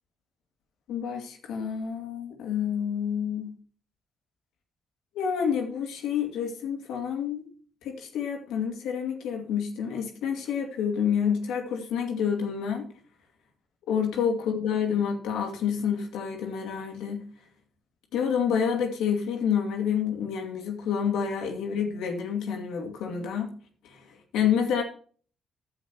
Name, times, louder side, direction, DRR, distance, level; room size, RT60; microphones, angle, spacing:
voice 1, 0.9-3.5 5.1-7.5 7.8-12.9 13.9-17.2 18.1-23.5 23.8-24.1 24.3-24.8, left 7 dB, 75° left, 2.2 m, -28 dB
10.0 x 7.3 x 4.7 m
hypercardioid pair, 45°, 0 cm